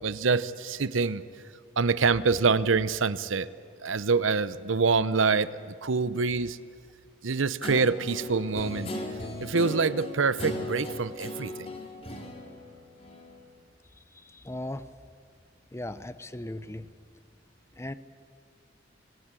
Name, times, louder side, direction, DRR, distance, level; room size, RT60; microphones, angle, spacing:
voice 1, 0.0-1.2 1.8-3.5 3.8-6.6 7.2-8.9 9.4-11.7, right 4 dB, 75° right, 16 dB, 0.8 m, -26 dB
Guitar, 7.6-13.4, left 1 dB, 30° left, 2.9 m, -37 dB
voice 2, 14.1-14.8 15.7-16.9 17.8-17.9, left 1 dB, 15° left, 13 dB, 0.6 m, -37 dB
26.5 x 17.5 x 9.0 m, 2.2 s
head